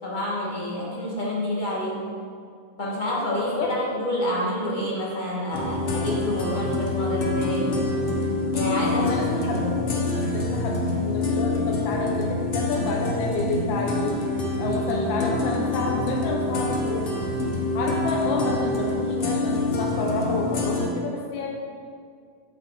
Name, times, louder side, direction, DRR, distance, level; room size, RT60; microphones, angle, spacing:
voice 1, 0.0-2.0 2.8-7.8 8.5-9.1 9.5-9.7 14.6-15.2, left 1 dB, 25° left, -5 dB, 1.4 m, -28 dB
voice 2, 3.4-3.7 8.9-14.1 14.6-17.0 17.7-21.5, left 3 dB, 75° left, 0 dB, 1.4 m, -29 dB
sound 1, 5.5-20.9, left 2 dB, 55° left, 0.6 m, -26 dB
7.1 x 7.0 x 3.7 m, 2.2 s
omnidirectional pair, 2.2 m